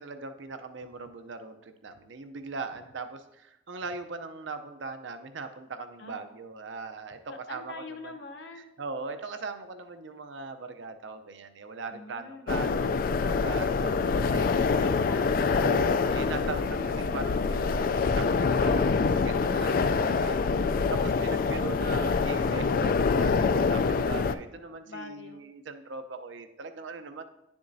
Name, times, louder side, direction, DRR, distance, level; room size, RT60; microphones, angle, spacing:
voice 1, 0.0-8.2 8.5-14.9 15.6-27.2, right 4 dB, 70° right, 8 dB, 0.6 m, -40 dB
voice 2, 7.3-8.7 11.9-12.5 14.8-15.9 24.9-25.5, left 3 dB, 60° left, 5 dB, 0.8 m, -44 dB
sound 1, 12.5-24.3, left 4 dB, 45° left, 0.3 m, -25 dB
10.5 x 7.1 x 2.6 m, 0.91 s
head